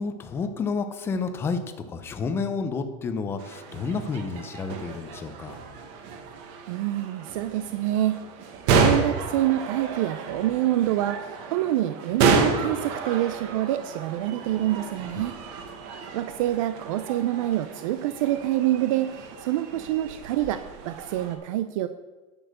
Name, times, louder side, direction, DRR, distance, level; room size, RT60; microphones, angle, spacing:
voice 1, 0.0-5.6 15.1-15.2, left 4 dB, 15° left, 8 dB, 0.6 m, -30 dB
sound 1, 3.4-21.3, right 4 dB, 50° right, 1.5 m, -30 dB
voice 2, 6.7-8.2 8.7-15.4 16.1-21.9, right 13 dB, 70° right, 11 dB, 0.5 m, -26 dB
9.9 x 7.0 x 6.6 m, 1.2 s
supercardioid pair, 180°, 18 cm